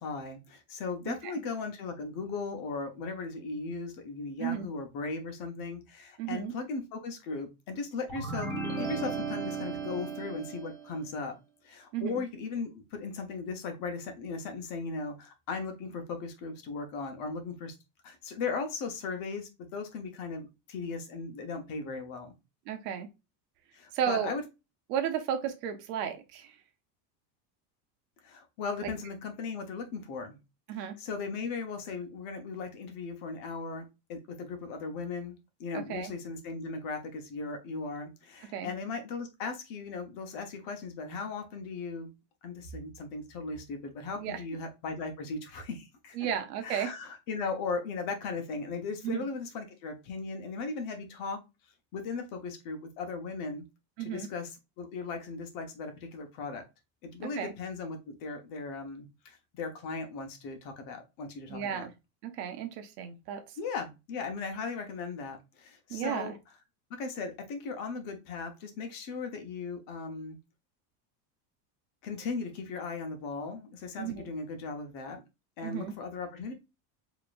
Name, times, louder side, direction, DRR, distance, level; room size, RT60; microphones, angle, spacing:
voice 1, 0.0-8.5 8.8-11.3 11.6-17.7 18.0-22.3 23.7-24.4 28.2-30.4 30.7-42.1 42.4-46.2 46.6-51.4 51.9-53.6 54.0-56.6 57.0-61.9 63.6-66.3 67.0-70.4 72.0-75.2 75.6-76.5, left 4 dB, 40° left, 1.0 m, -37 dB
voice 2, 6.2-6.5 11.9-12.2 22.7-23.1 23.9-24.4 24.9-26.5 28.8-28.9 30.7-31.0 35.9-36.1 38.5-38.7 44.2-44.4 46.1-46.9 49.0-49.2 54.0-54.3 57.2-57.5 61.5-61.9 62.2-63.6 65.9-66.3 74.0-74.2 75.6-75.9, right 9 dB, 65° right, 1.1 m, -33 dB
sound 1, 8.1-10.9, right 4 dB, 5° left, 1.3 m, -35 dB
5.0 x 3.0 x 2.5 m
cardioid pair, 170°, 50 cm